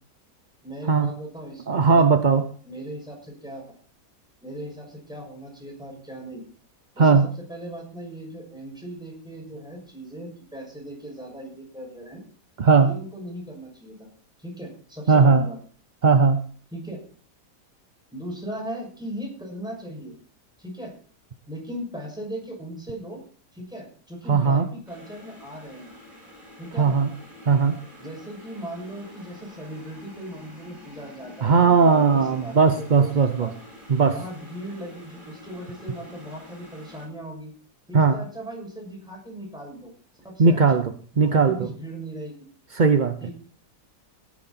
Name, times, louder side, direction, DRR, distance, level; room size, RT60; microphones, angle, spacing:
voice 1, 0.6-2.4 2.6-3.6 4.4-6.4 6.9-12.2 12.8-14.1 14.4-15.6 16.7-17.0 18.1-20.1 20.6-20.9 21.5-23.2 23.5-25.9 26.6-27.0 28.0-33.5 34.1-37.5 37.9-39.9 40.2-40.8 41.1-42.3 43.2-43.3, right 1 dB, ahead, -1 dB, 6.4 m, -38 dB
voice 2, 1.7-2.4 7.0-7.2 12.6-12.9 15.1-15.5 16.0-16.4 24.3-24.7 26.8-27.1 27.5-27.8 31.4-33.5 33.9-34.1 37.9-38.2 40.4-40.8 41.2-41.7 42.7-43.2, right 5 dB, 45° right, 9 dB, 0.6 m, -18 dB
sound 1, 24.9-37.1, left 1 dB, 30° right, 7.3 m, -47 dB
17.0 x 10.5 x 4.2 m, 0.43 s
omnidirectional pair, 1.8 m